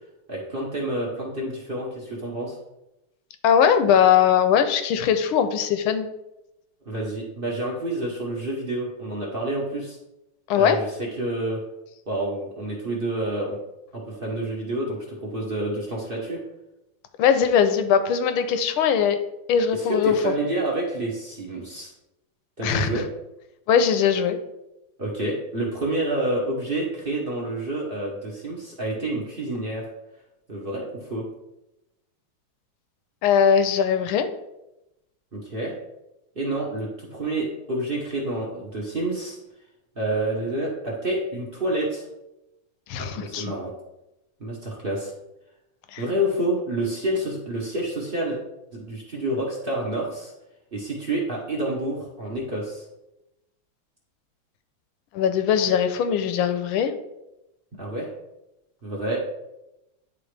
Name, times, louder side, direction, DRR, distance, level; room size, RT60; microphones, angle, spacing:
voice 1, 0.3-2.6 6.8-10.0 10.5-11.6 12.1-13.6 13.9-16.4 19.7-21.9 22.6-23.1 25.0-29.9 30.5-31.3 35.3-35.7 36.3-39.4 40.0-42.1 43.0-43.7 44.4-45.1 46.0-48.4 48.7-50.3 50.7-52.8 57.7-58.1 58.8-59.2, right 1 dB, 40° right, -2 dB, 0.8 m, -28 dB
voice 2, 3.4-6.1 10.5-10.8 17.2-19.2 19.5-20.3 22.6-23.0 23.7-24.4 33.2-34.3 42.9-43.5 45.9-46.0 55.1-56.9, left 8 dB, 80° left, 9 dB, 1.4 m, -20 dB
9.8 x 3.7 x 3.3 m, 0.91 s
omnidirectional pair, 2.4 m